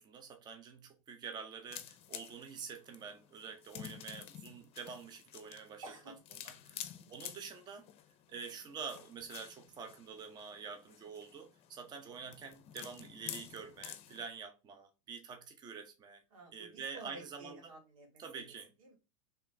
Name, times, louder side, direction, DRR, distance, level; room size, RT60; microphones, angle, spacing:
voice 1, 0.0-5.8 6.4-7.9 8.3-16.2 16.5-17.6 18.2-18.7, right 6 dB, 25° right, 0.8 m, -47 dB
sound 1, 1.7-14.3, left 11 dB, 35° left, 0.6 m, -50 dB
voice 2, 5.8-6.2 6.7-7.1 8.3-8.4 14.1-14.2 16.3-18.2 18.8-19.0, right 2 dB, 80° right, 2.3 m, -53 dB
4.4 x 3.3 x 3.3 m
supercardioid pair, 120°, 17 cm